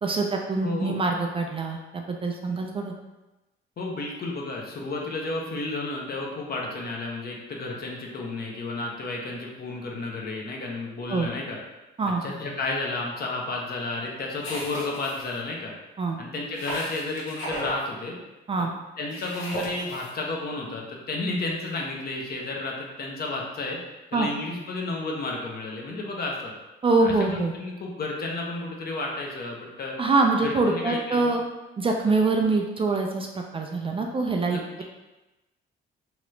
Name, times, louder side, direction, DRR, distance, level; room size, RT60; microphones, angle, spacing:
voice 1, 0.0-2.9 11.1-11.3 12.0-12.2 16.0-16.2 18.5-18.7 24.1-24.3 26.8-27.5 30.0-31.4 31.8-34.6, right 3 dB, 25° right, 2 dB, 0.4 m, -24 dB
voice 2, 0.6-1.0 3.8-11.6 12.2-15.7 16.2-18.2 19.0-23.8 24.1-26.5 27.0-29.9 30.4-31.3 34.5-34.8, left 2 dB, 50° left, -1 dB, 0.7 m, -32 dB
sound 1, 14.4-15.4 16.5-17.8 19.1-20.1, equal, 80° left, 0.9 m, -35 dB
2.9 x 2.4 x 3.1 m, 1.0 s
cardioid pair, 90°, 20 cm